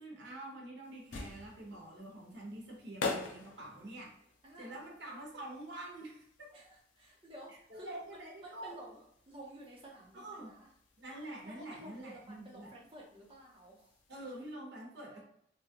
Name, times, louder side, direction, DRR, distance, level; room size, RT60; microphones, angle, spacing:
voice 1, 0.0-4.1 4.6-6.5 7.7-8.8 10.1-10.5 11.0-12.7 14.1-15.2, right 1 dB, 70° right, -1 dB, 0.9 m, -46 dB
sound 1, 0.8-14.5, left 3 dB, 85° left, 0.5 m, -47 dB
voice 2, 4.4-4.8 6.5-9.0 9.3-10.7 11.4-14.0 15.1-15.2, right 1 dB, 30° right, -3 dB, 0.8 m, -53 dB
2.9 x 2.3 x 2.7 m, 0.71 s
head